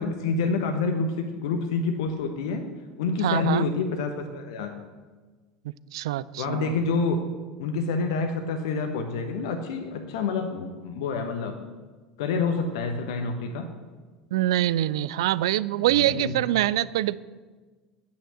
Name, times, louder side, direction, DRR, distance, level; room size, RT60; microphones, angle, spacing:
voice 1, 0.0-2.6 3.0-4.7 6.4-7.2 7.6-11.5 12.2-13.7 15.9-16.4, left 4 dB, 60° left, 5 dB, 1.1 m, -28 dB
voice 2, 3.2-3.6 5.9-6.7 14.3-17.2, right 14 dB, 65° right, 19 dB, 0.4 m, -24 dB
10.0 x 8.6 x 7.7 m, 1.4 s
figure-of-eight pair, 70°, 3 cm